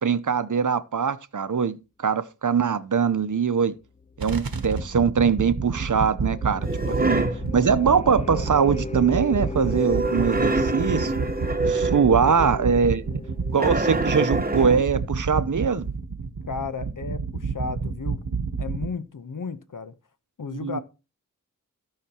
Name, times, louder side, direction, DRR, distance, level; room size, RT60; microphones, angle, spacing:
voice 1, 0.0-1.8 2.0-3.7 4.2-7.2 7.5-11.1 11.7-13.0 13.5-15.9 20.5-20.8, right 6 dB, 60° right, 0.8 m, -22 dB
sound 1, 3.8-14.2, left 3 dB, 20° left, 0.5 m, -36 dB
sound 2, 4.2-18.9, right 4 dB, 85° right, 1.1 m, -29 dB
sound 3, 6.6-7.5 9.7-12.2 13.6-14.9, right 2 dB, 25° right, 1.1 m, -26 dB
voice 2, 16.5-18.3 18.6-19.9 20.4-20.8, left 4 dB, 65° left, 1.0 m, -34 dB
16.0 x 5.8 x 2.9 m
wide cardioid pair, 55°, 34 cm